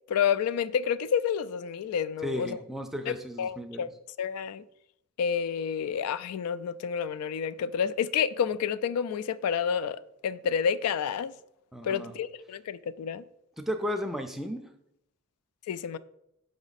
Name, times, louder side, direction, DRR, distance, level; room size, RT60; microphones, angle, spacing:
voice 1, 0.1-2.6 3.1-3.9 4.2-4.6 5.2-11.3 11.8-13.2 15.7-16.0, left 7 dB, 85° left, 0.3 m, -29 dB
voice 2, 2.2-3.9 11.7-12.1 13.6-14.7, equal, ahead, 0.4 m, -34 dB
6.1 x 4.9 x 4.0 m
head